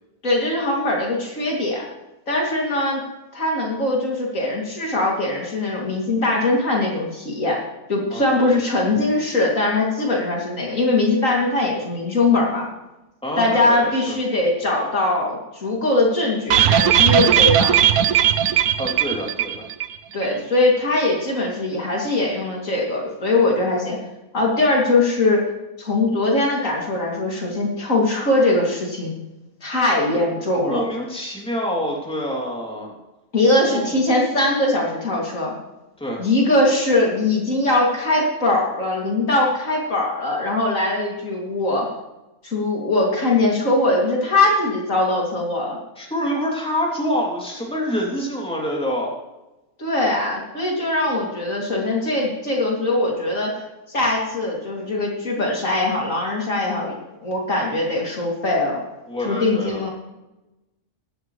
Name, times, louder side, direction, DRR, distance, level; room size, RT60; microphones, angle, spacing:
voice 1, 0.2-1.8 2.3-3.0 3.3-7.6 7.9-12.7 13.4-17.8 20.1-24.0 24.3-25.4 25.8-29.1 29.6-30.8 33.3-35.5 36.2-41.9 42.4-45.8 49.8-53.6 53.9-57.0 57.2-58.8 59.2-59.9, left 2 dB, 60° left, -2 dB, 3.3 m, -21 dB
voice 2, 8.1-8.5 13.2-14.2 18.8-19.6 30.1-30.3 30.6-32.9 33.7-33.8 36.0-36.2 46.0-49.1 59.1-59.8, equal, 5° left, -3 dB, 3.1 m, -26 dB
sound 1, 16.5-20.0 20.2-20.3 20.6-20.7, right 10 dB, 75° right, 1.2 m, -17 dB
15.0 x 13.0 x 3.3 m, 1.0 s
omnidirectional pair, 1.6 m